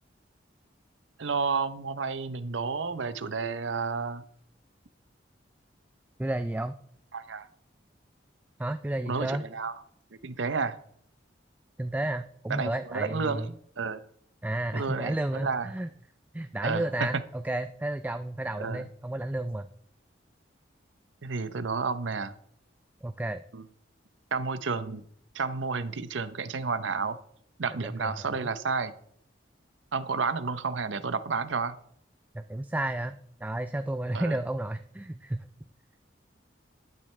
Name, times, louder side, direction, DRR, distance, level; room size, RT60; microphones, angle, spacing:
voice 1, 1.2-4.2 7.1-7.5 9.1-9.7 10.2-10.8 12.5-14.0 14.7-15.7 16.6-17.1 18.6-18.8 21.2-22.3 23.5-23.7 24.3-25.0 25.3-27.2 27.6-28.9 29.9-31.7 34.1-34.4, right 4 dB, 85° right, 12 dB, 0.8 m, -31 dB
voice 2, 6.2-6.8 8.6-9.4 11.8-13.5 14.4-15.9 16.3-19.7 23.0-23.4 27.8-28.5 32.3-35.4, right 1 dB, 10° right, 10 dB, 0.3 m, -32 dB
12.0 x 10.5 x 3.3 m, 0.65 s
head